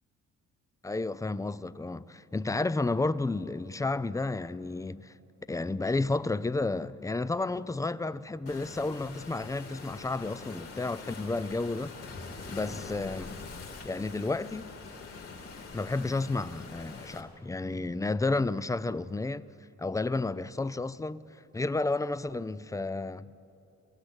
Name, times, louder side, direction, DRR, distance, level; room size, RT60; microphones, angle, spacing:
voice 1, 0.8-5.1 5.5-11.9 12.5-13.4 13.8-14.7 15.7-19.4 19.8-21.2 21.5-23.3, left 3 dB, 10° left, 0.5 m, -31 dB
Waves surf, 8.5-17.2, left 4 dB, 55° left, 3.5 m, -44 dB
22.5 x 16.5 x 8.1 m
cardioid pair, 90°, 30 cm